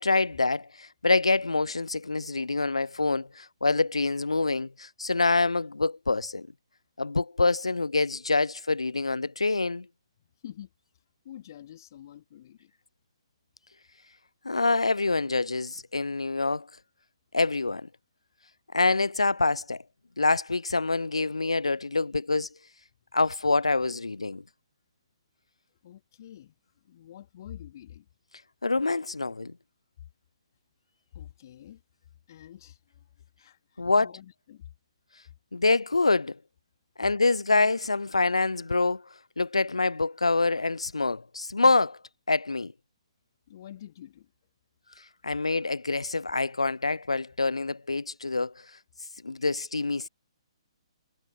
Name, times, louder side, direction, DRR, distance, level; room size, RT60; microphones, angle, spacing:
voice 1, 0.0-6.5 7.0-9.9 14.4-16.7 17.3-17.9 18.7-19.8 20.2-22.5 23.1-24.4 28.6-29.5 33.8-34.1 35.5-36.4 37.0-39.0 39.4-42.0 42.3-42.7 45.2-48.5 49.2-50.1, left 3 dB, 80° left, 0.4 m, -26 dB
voice 2, 10.2-10.7 11.2-12.7 25.8-26.5 26.8-28.1 31.1-31.8 32.3-33.0 33.4-34.6 43.5-44.3, left 11 dB, 40° left, 3.3 m, -47 dB
figure-of-eight pair, 130°, 3 cm